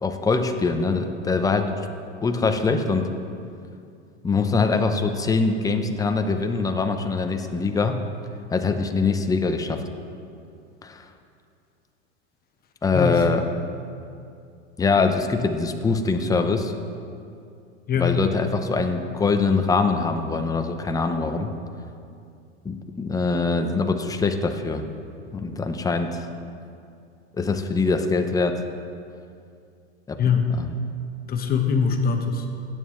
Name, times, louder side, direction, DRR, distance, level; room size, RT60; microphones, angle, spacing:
voice 1, 0.0-1.7 2.2-3.1 4.2-8.0 8.5-9.8 10.8-11.0 12.8-13.4 14.8-16.7 18.0-21.5 22.6-24.8 25.3-26.3 27.4-28.6 30.1-30.2 30.6-30.7, left 4 dB, 10° left, 6 dB, 0.6 m, -23 dB
voice 2, 12.9-13.2 17.9-18.2 30.2-30.5 31.3-32.5, left 6 dB, 25° left, 4 dB, 1.1 m, -22 dB
16.0 x 9.1 x 3.2 m, 2.4 s
supercardioid pair, 125°, 35 cm